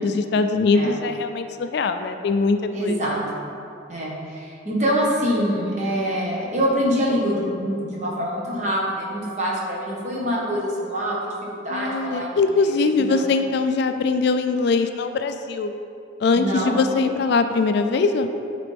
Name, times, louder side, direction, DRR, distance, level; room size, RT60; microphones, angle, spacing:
voice 1, 0.0-3.0 11.7-15.7 16.2-18.3, left 4 dB, 55° left, 8 dB, 0.3 m, -22 dB
voice 2, 2.7-3.2 3.9-12.4 13.0-13.2 16.3-16.8, equal, 35° right, -5 dB, 1.3 m, -25 dB
10.0 x 4.1 x 3.4 m, 2.6 s
head